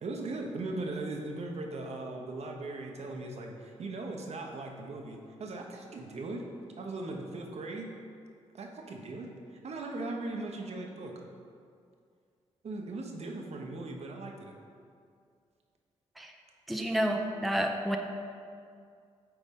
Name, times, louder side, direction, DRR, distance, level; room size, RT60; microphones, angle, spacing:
voice 1, 0.0-6.4 6.8-7.9 8.5-9.3 9.6-11.1 12.6-14.5, right 2 dB, 55° right, 1 dB, 0.8 m, -38 dB
voice 2, 16.7-18.0, equal, ahead, 3 dB, 0.5 m, -30 dB
7.8 x 4.0 x 3.7 m, 2.3 s
supercardioid pair, 55°, 13 cm